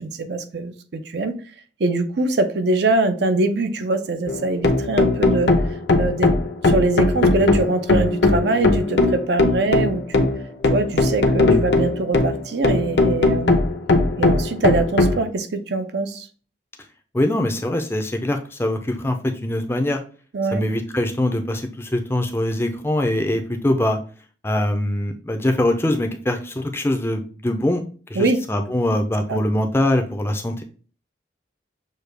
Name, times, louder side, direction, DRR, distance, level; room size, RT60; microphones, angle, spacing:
voice 1, 0.0-1.4 1.8-5.5 6.0-6.3 6.6-10.3 10.7-13.6 14.2-16.3 20.3-20.6 28.1-28.4 29.3-29.4, right 2 dB, 65° right, 8 dB, 0.5 m, -23 dB
sound 1, 4.3-15.2, left 2 dB, 70° left, 0.7 m, -19 dB
voice 2, 17.1-20.0 20.5-24.0 24.4-27.8 28.1-30.6, left 1 dB, 15° left, 5 dB, 0.4 m, -23 dB
6.5 x 2.3 x 3.3 m, 0.39 s
head